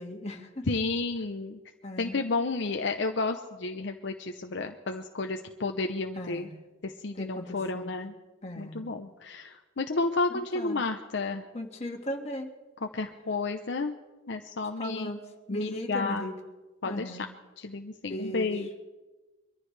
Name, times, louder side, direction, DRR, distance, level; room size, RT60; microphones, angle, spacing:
voice 1, 0.0-0.6 1.8-2.2 6.2-6.5 7.2-7.9 8.4-8.9 10.6-10.8 11.5-12.5 14.8-15.2 15.5-16.3 16.9-17.3 18.1-18.5, left 1 dB, 35° left, 1 dB, 1.9 m, -36 dB
voice 2, 0.7-1.6 2.0-6.5 6.8-8.1 8.5-11.4 12.8-14.0 14.3-15.1 15.5-16.3 16.8-17.3 17.6-18.8, left 3 dB, 65° left, 5 dB, 0.7 m, -31 dB
23.5 x 14.5 x 3.3 m, 1.2 s
head